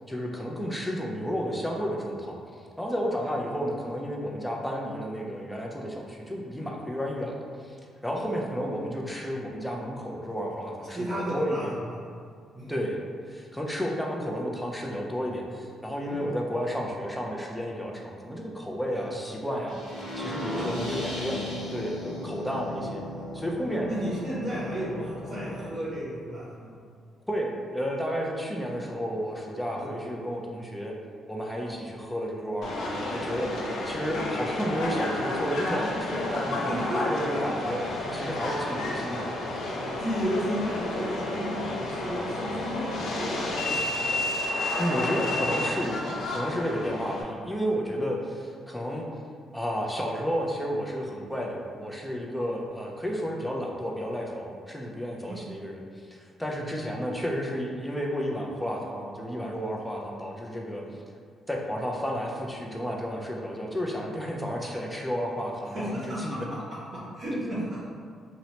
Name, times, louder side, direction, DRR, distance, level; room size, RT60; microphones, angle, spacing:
voice 1, 0.1-2.4 2.8-7.4 7.6-7.8 8.0-11.7 12.7-13.0 13.3-19.8 20.2-23.0 23.3-23.9 27.3-30.9 31.3-37.8 38.1-39.3 44.6-46.0 46.3-49.1 49.5-60.8 61.5-66.5 67.3-67.6, equal, 5° left, -1 dB, 0.4 m, -32 dB
voice 2, 10.9-11.9 12.5-12.7 16.1-16.2 18.9-19.1 20.5-21.0 22.0-22.3 23.8-26.8 29.7-29.9 36.7-37.5 40.0-44.2 47.9-48.0 55.3-55.4 56.4-56.6 65.7-66.4 66.9-67.9, equal, 50° right, -9 dB, 0.6 m, -33 dB
sound 1, 19.7-25.7, left 1 dB, 85° left, 0.8 m, -37 dB
Subway metro underground, 32.6-47.2, left 1 dB, 65° left, 0.4 m, -31 dB
2.8 x 2.1 x 2.8 m, 2.1 s
cardioid pair, 90°, 0 cm